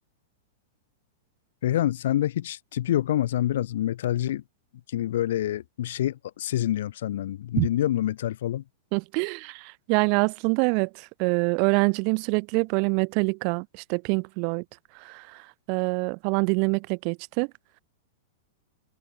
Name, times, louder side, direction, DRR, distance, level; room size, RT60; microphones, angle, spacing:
voice 1, 1.6-4.4 4.9-8.6, left 12 dB, 60° left, 5.1 m, -26 dB
voice 2, 8.9-14.6 15.0-15.4 15.7-17.5, right 40 dB or more, 45° right, 3.1 m, -25 dB
figure-of-eight pair, 100°, 0 cm